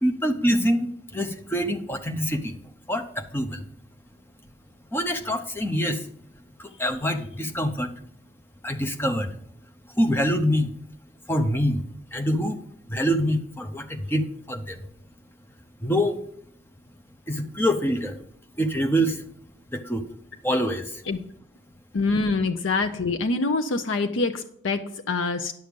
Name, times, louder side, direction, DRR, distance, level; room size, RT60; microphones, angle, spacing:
voice 1, 0.0-2.5 2.9-3.6 4.9-6.1 6.6-8.0 8.6-9.3 10.0-10.7 11.3-11.8 12.1-12.6 12.9-14.8 15.8-16.2 17.3-18.2 18.6-19.2 19.7-20.1 20.4-21.0, equal, 10° left, 5 dB, 0.8 m, -25 dB
voice 2, 21.9-25.5, left 3 dB, 90° left, 7 dB, 0.6 m, -25 dB
10.5 x 6.6 x 5.3 m, 0.71 s
head